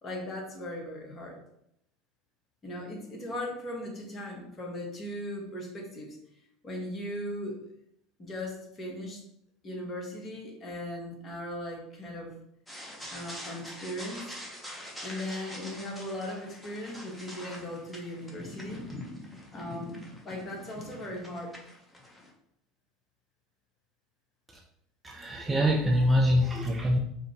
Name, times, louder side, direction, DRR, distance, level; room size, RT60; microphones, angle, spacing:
voice 1, 0.0-1.4 2.6-6.2 6.6-7.6 8.2-9.2 9.6-12.4 13.1-14.3 15.0-18.9 19.5-21.6, left 1 dB, 30° left, 0 dB, 1.1 m, -38 dB
sound 1, 12.7-22.3, left 1 dB, 5° left, 0.9 m, -44 dB
voice 2, 25.0-27.0, equal, 15° right, -1 dB, 0.5 m, -24 dB
4.8 x 2.1 x 2.8 m, 0.75 s
figure-of-eight pair, 70°, 0 cm